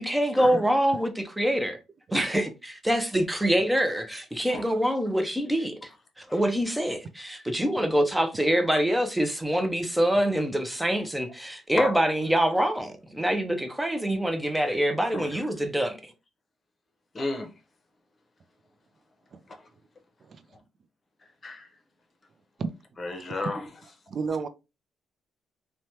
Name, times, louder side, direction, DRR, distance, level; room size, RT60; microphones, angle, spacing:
voice 1, 0.0-1.8 2.1-5.8 6.2-16.1, equal, 5° right, 0.6 m, -25 dB
voice 2, 15.1-15.5 17.1-17.5 19.5-19.7 21.4-21.7 23.0-23.7, left 2 dB, 35° left, 0.8 m, -33 dB
voice 3, 24.1-24.5, right 5 dB, 50° right, 0.4 m, -31 dB
3.1 x 2.2 x 2.7 m
cardioid pair, 90°, 0 cm